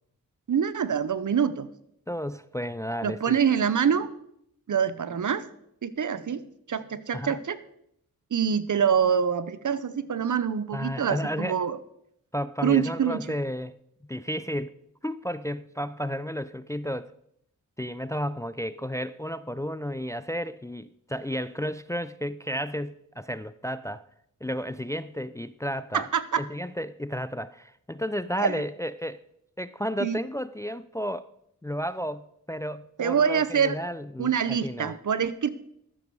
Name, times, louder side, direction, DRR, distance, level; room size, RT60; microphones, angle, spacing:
voice 1, 0.5-1.7 3.0-4.1 4.7-5.5 5.8-6.4 6.7-7.6 8.3-11.8 12.6-13.2 25.9-26.4 28.4-28.6 30.0-30.2 33.0-33.8 34.2-35.5, right 7 dB, 60° right, 15 dB, 0.8 m, -25 dB
voice 2, 2.1-3.4 7.1-7.4 10.7-11.5 12.3-13.7 14.1-14.7 15.0-17.1 17.8-24.0 24.4-26.1 26.4-29.2 29.6-31.3 31.6-35.0, equal, 10° left, 15 dB, 0.4 m, -32 dB
13.5 x 7.1 x 4.7 m, 0.74 s
cardioid pair, 40°, 35 cm